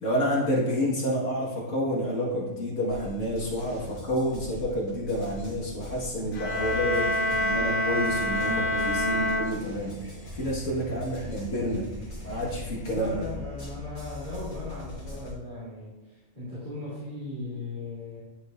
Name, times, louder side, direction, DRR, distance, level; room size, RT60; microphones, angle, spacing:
voice 1, 0.0-10.0 10.3-11.9 12.2-13.2, equal, 65° left, -4 dB, 2.1 m, -29 dB
sound 1, 2.9-15.3, left 2 dB, 80° left, 3.1 m, -41 dB
sound 2, 6.3-10.1, left 1 dB, 50° left, 0.9 m, -27 dB
voice 2, 12.9-18.2, left 2 dB, 35° right, -12 dB, 2.4 m, -38 dB
11.0 x 4.9 x 2.6 m, 1.1 s
omnidirectional pair, 1.4 m